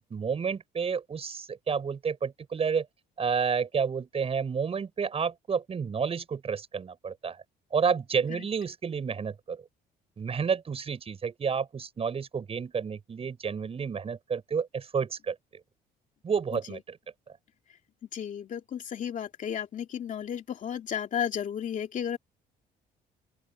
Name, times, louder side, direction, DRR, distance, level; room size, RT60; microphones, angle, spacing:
voice 1, 0.0-2.9 3.2-7.4 7.7-9.6 10.2-15.4 16.2-17.0, right 6 dB, 35° right, 6.8 m, -30 dB
voice 2, 18.1-22.2, left 8 dB, 50° left, 2.7 m, -33 dB
open air
cardioid pair, 110°, 17 cm